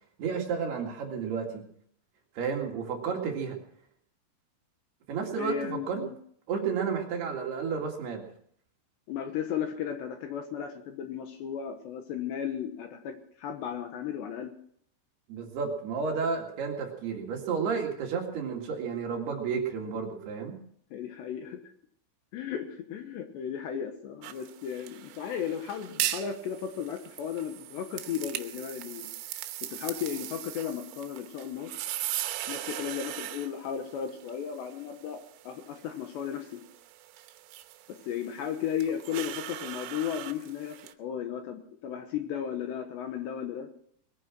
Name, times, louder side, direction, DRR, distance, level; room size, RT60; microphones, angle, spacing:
voice 1, 0.2-1.6 2.4-3.6 5.1-6.0 6.5-8.3 15.3-20.6, right 6 dB, 60° right, 1 dB, 3.7 m, -32 dB
voice 2, 5.4-6.1 9.1-14.5 20.9-21.6 22.3-29.4 29.7-31.7 32.5-36.6 37.9-43.7, left 8 dB, 70° left, 6 dB, 3.0 m, -35 dB
sound 1, 24.2-40.9, right 14 dB, 85° right, 3.5 m, -39 dB
21.5 x 9.8 x 6.1 m, 0.65 s
omnidirectional pair, 5.9 m